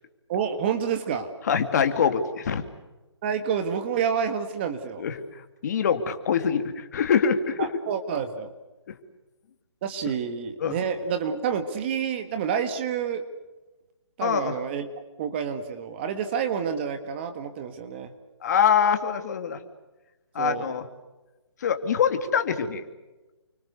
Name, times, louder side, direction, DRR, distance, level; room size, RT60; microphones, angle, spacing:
voice 1, 0.3-1.3 3.2-5.0 7.6-8.5 9.8-13.2 14.2-14.9 15.2-18.1 20.4-20.7, right 7 dB, 20° right, 8 dB, 1.7 m, -28 dB
voice 2, 1.5-2.7 5.0-7.7 8.9-9.0 10.6-10.8 14.2-14.6 18.4-19.6 20.3-20.8 21.6-22.8, left 7 dB, 35° left, 8 dB, 2.5 m, -24 dB
30.0 x 25.0 x 6.8 m, 1.1 s
hypercardioid pair, 165°, 15 cm